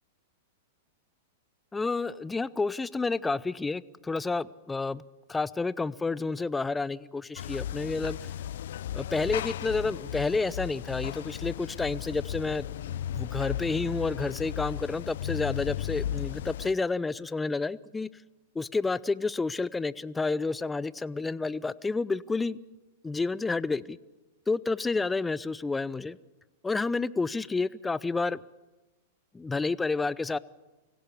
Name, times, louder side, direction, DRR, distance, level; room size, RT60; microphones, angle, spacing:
voice 1, 1.7-5.0 5.3-8.3 8.9-18.2 18.5-22.6 23.0-24.0 24.5-26.2 26.6-28.4 29.3-30.4, left 3 dB, 10° left, 19 dB, 0.6 m, -30 dB
sound 1, 7.4-16.7, left 11 dB, 65° left, 0.6 m, -35 dB
24.5 x 16.5 x 7.2 m, 1.1 s
hypercardioid pair, 105°, 0 cm